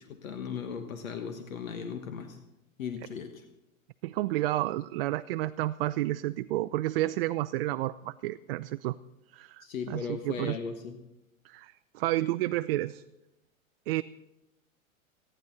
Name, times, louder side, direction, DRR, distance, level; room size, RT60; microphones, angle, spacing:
voice 1, 0.0-2.4 2.8-3.4 9.6-11.0, left 6 dB, 75° left, 6 dB, 1.4 m, -37 dB
voice 2, 4.0-9.0 9.3-10.6 11.4-13.0 13.9-14.0, right 16 dB, 45° right, 12 dB, 0.4 m, -30 dB
24.0 x 10.0 x 4.1 m, 0.95 s
hypercardioid pair, 115°, 41 cm